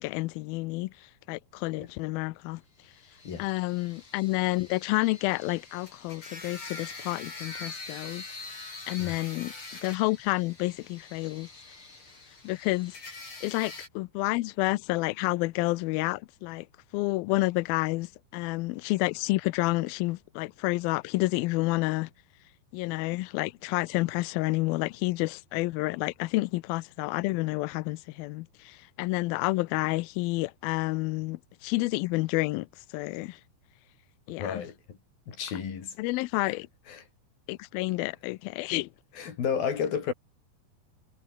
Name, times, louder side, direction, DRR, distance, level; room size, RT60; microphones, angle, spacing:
voice 1, 0.0-2.9 3.4-9.5 9.8-11.5 12.4-13.0 13.4-16.7 16.9-22.1 22.7-33.4 34.3-34.6 36.0-36.7 37.5-38.9, left 21 dB, 80° left, 2.1 m, -30 dB
sound 1, 2.9-13.9, left 3 dB, 30° left, 6.4 m, -44 dB
voice 2, 34.4-35.0 35.3-36.0 36.5-36.6 36.9-37.0 39.2-40.1, left 7 dB, 60° left, 5.3 m, -32 dB
omnidirectional pair, 4.8 m